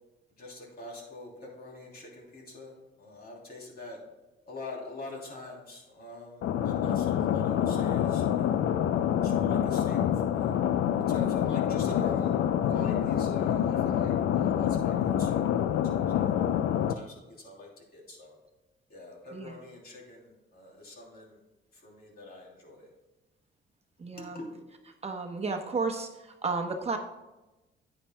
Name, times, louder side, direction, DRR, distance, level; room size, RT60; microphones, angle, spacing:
voice 1, 0.4-4.0 4.5-8.6 9.2-10.5 11.1-12.4 12.7-15.5 15.8-16.3 16.6-18.4 18.9-21.4 21.7-22.9 24.1-24.5, left 2 dB, 50° left, -1 dB, 3.0 m, -44 dB
sound 1, 6.4-16.9, left 10 dB, 75° left, 0.5 m, -26 dB
voice 2, 24.0-24.4 25.0-26.1 26.4-27.0, right 4 dB, 30° right, 3 dB, 1.0 m, -32 dB
10.0 x 8.9 x 2.2 m, 1.0 s
cardioid pair, 90°, 20 cm